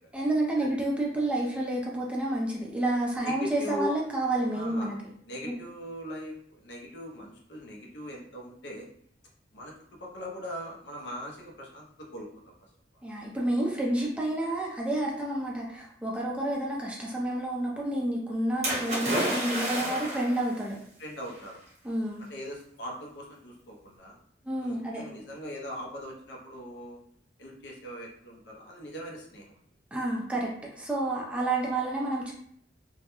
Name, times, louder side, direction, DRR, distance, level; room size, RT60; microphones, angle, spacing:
voice 1, 0.1-5.0 5.4-5.5 13.0-20.8 21.8-22.2 24.4-25.1 29.9-30.5 30.7-32.3, right 1 dB, 5° right, -3 dB, 0.3 m, -29 dB
voice 2, 3.2-3.9 4.5-8.9 9.5-12.5 14.0-14.1 19.8-20.1 21.0-21.6 22.3-24.2 24.6-27.0 27.4-29.6, equal, 70° left, -1 dB, 0.6 m, -41 dB
Splash splatter, 18.6-20.4 21.4-21.5, right 1 dB, 40° right, 0.9 m, -30 dB
2.2 x 2.1 x 2.9 m, 0.66 s
head